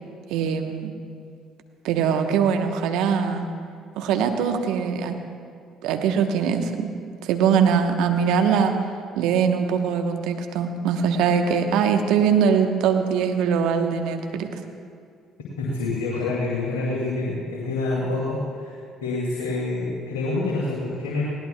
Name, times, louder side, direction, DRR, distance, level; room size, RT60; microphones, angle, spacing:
voice 1, 0.3-0.9 1.8-3.5 4.0-5.2 5.8-6.9 7.2-8.8 9.1-14.5, right 7 dB, 70° right, 5 dB, 1.0 m, -22 dB
voice 2, 15.6-18.4 19.0-21.2, left 3 dB, 80° left, -5 dB, 2.3 m, -26 dB
20.0 x 17.5 x 2.3 m, 2.2 s
hypercardioid pair, 55°, 0 cm